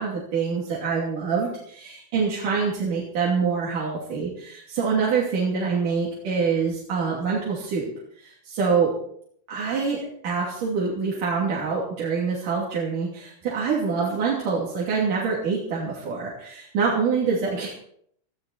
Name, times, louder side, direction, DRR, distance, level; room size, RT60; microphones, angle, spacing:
voice 1, 0.0-7.9 8.2-8.9 9.5-17.7, right 5 dB, 90° right, -5 dB, 4.4 m, -25 dB
18.5 x 13.5 x 4.3 m, 0.66 s
omnidirectional pair, 3.6 m